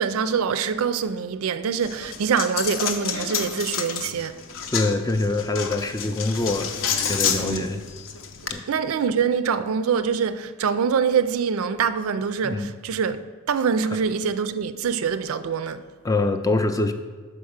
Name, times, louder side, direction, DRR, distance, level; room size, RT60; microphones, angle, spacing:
voice 1, 0.0-4.4 7.4-7.7 8.7-13.2 13.5-15.8, right 6 dB, 90° right, 0.4 m, -24 dB
Coin (dropping), 1.8-8.5, left 7 dB, 70° left, 0.6 m, -29 dB
voice 2, 4.7-6.8 7.1-7.8 8.5-8.6 12.4-12.7 16.0-16.9, left 2 dB, 15° left, 0.3 m, -24 dB
6.0 x 4.6 x 6.4 m
head